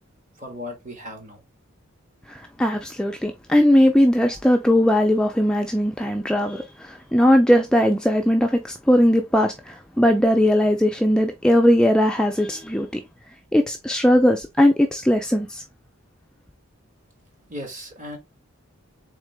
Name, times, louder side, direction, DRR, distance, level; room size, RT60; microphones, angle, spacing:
voice 1, 0.4-1.4 17.5-18.2, left 1 dB, 35° right, 1.5 m, -36 dB
voice 2, 2.3-13.0 13.5-15.6, equal, 5° left, 0.3 m, -19 dB
3.7 x 3.6 x 3.3 m
head